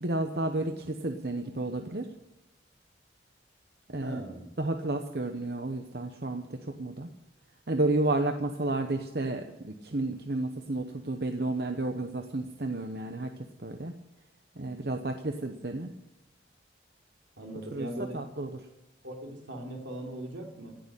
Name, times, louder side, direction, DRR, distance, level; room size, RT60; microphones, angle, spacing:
voice 1, 0.0-2.1 3.9-4.2 4.6-7.1 7.7-13.3 13.6-13.9 14.6-15.9 17.7-17.9 18.1-18.5, right 2 dB, 55° right, 5 dB, 0.9 m, -31 dB
voice 2, 4.0-4.5 17.4-18.2 19.0-20.8, right 1 dB, 80° right, 1 dB, 3.4 m, -39 dB
17.0 x 6.7 x 10.0 m, 1.0 s
head